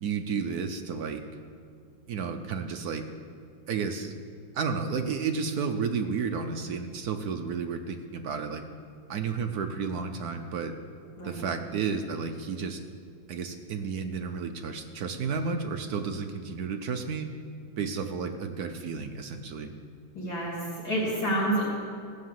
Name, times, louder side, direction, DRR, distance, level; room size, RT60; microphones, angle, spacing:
voice 1, 0.0-1.2 2.1-3.0 3.7-4.1 4.5-8.7 9.1-10.7 11.2-12.8 13.3-17.3 17.8-19.7, right 5 dB, 65° right, 6 dB, 1.0 m, -32 dB
voice 2, 20.1-21.6, right 1 dB, 65° left, -6 dB, 4.5 m, -29 dB
17.0 x 6.5 x 7.6 m, 2.2 s
omnidirectional pair, 2.3 m